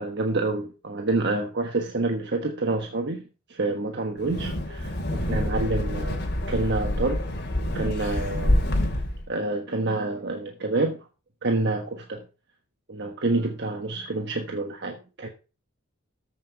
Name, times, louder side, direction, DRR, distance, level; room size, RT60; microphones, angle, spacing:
voice 1, 0.0-7.2 7.7-8.7 9.3-11.1 11.4-12.2 12.9-15.3, right 2 dB, 60° right, 1.3 m, -28 dB
Wind, 4.2-9.2, left 1 dB, 55° left, 2.7 m, -27 dB
14.0 x 5.7 x 4.5 m
head